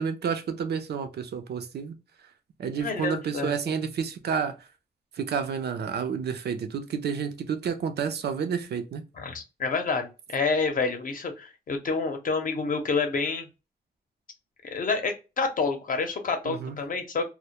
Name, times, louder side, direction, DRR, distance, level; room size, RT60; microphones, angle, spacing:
voice 1, 0.0-2.0 2.6-4.6 5.2-9.0 16.4-16.8, right 6 dB, 80° right, 0.5 m, -30 dB
voice 2, 2.7-3.6 9.2-13.5 14.7-17.2, left 4 dB, 55° left, 0.6 m, -28 dB
2.1 x 2.1 x 2.9 m
wide cardioid pair, 140°, 17 cm